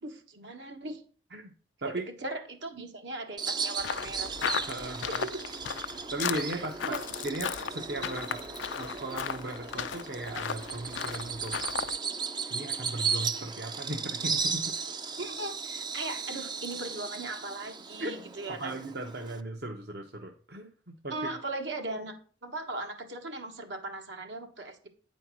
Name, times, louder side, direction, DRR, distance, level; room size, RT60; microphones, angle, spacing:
voice 1, 0.0-1.0 1.8-4.4 5.1-5.4 6.5-7.0 15.2-18.8 21.1-22.2 22.4-24.9, right 2 dB, 75° right, 4 dB, 1.5 m, -38 dB
Bird vocalization bird call bird song, 3.4-19.4, right 5 dB, 25° right, 0.4 m, -36 dB
sound 1, 3.8-12.0, left 7 dB, 90° left, 0.5 m, -36 dB
voice 2, 4.7-5.2 6.1-8.4 8.8-11.6 12.5-14.7 18.0-18.1 18.5-21.1, right 2 dB, 60° right, 2 dB, 0.9 m, -37 dB
9.0 x 4.4 x 6.1 m, 0.40 s
head